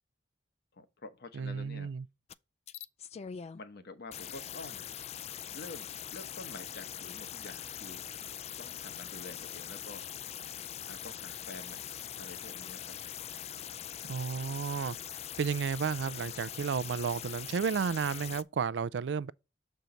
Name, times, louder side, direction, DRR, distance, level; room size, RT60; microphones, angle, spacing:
voice 1, 0.7-1.9 3.5-4.9 5.5-8.1 8.6-10.0 10.9-11.9 12.2-13.0, left 2 dB, 60° left, 1.0 m, -48 dB
voice 2, 1.3-2.1 14.1-15.0 15.4-19.3, right 6 dB, 70° right, 0.4 m, -32 dB
sound 1, 2.3-2.4 2.7-3.6 4.1-18.4, left 10 dB, 35° left, 0.3 m, -42 dB
7.0 x 4.6 x 3.7 m
head